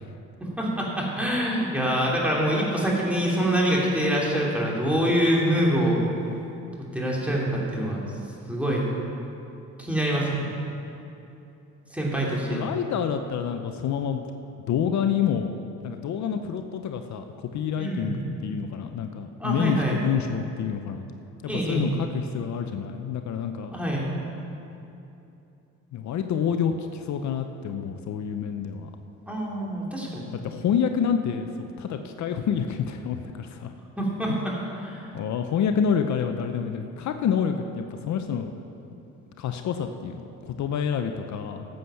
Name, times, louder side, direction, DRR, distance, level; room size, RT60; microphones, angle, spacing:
voice 1, 0.4-6.0 6.9-8.0 8.5-8.9 9.8-10.4 11.9-12.7 17.8-18.2 19.4-20.0 21.5-21.9 23.7-24.1 29.3-30.3 34.0-35.0, right 1 dB, 5° right, -4 dB, 2.9 m, -25 dB
voice 2, 12.5-14.2 14.7-15.5 15.8-17.3 17.5-21.1 21.4-23.7 25.9-28.9 30.3-33.7 35.1-38.5 39.4-41.7, left 7 dB, 65° left, 6 dB, 0.7 m, -28 dB
13.5 x 7.9 x 5.8 m, 2.8 s
cardioid pair, 90°, 30 cm